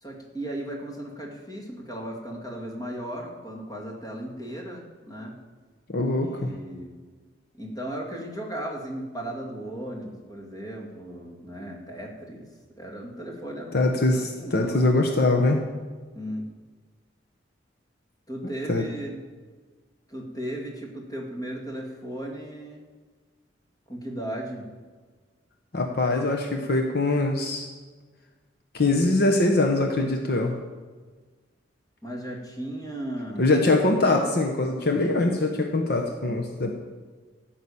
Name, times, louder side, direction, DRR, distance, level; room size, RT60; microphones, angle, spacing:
voice 1, 0.0-5.4 6.2-6.9 7.5-12.5 12.8-14.8 16.1-16.5 18.3-19.2 20.1-22.8 23.9-24.7 32.0-33.5, right 1 dB, 20° left, -1 dB, 2.1 m, -36 dB
voice 2, 5.9-6.5 13.7-15.6 18.7-18.8 25.7-27.7 28.7-30.6 33.4-36.7, left 2 dB, 55° left, 2 dB, 1.0 m, -23 dB
13.5 x 6.0 x 8.6 m, 1.4 s
head